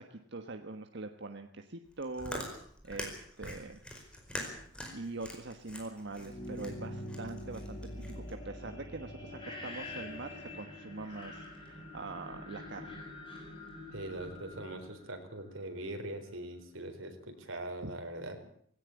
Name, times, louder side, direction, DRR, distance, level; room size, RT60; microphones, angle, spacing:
voice 1, 0.0-2.5 2.8-3.8 4.9-13.0 17.8-17.9, right 3 dB, 60° right, 6 dB, 1.4 m, -43 dB
Chewing mastication, 1.9-8.3, left 1 dB, 5° left, 4.8 m, -44 dB
sound 1, 6.1-15.9, left 1 dB, 30° left, 6.8 m, -45 dB
voice 2, 13.9-18.4, right 1 dB, 85° right, 5 dB, 4.4 m, -41 dB
18.5 x 17.5 x 8.4 m, 0.63 s
head